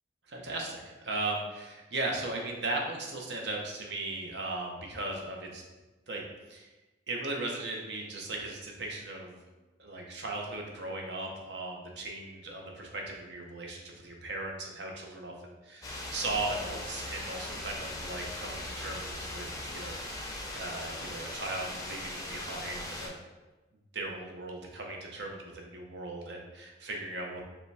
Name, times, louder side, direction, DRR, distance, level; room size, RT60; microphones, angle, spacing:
voice 1, 0.3-5.6 6.1-6.2 6.5-6.7 7.1-9.4 9.8-19.5 19.7-23.2 23.9-27.4, right 2 dB, 65° right, 1 dB, 0.7 m, -37 dB
sound 1, 15.8-23.1, left 1 dB, 20° left, 0.5 m, -39 dB
4.9 x 2.2 x 3.3 m, 1.1 s
head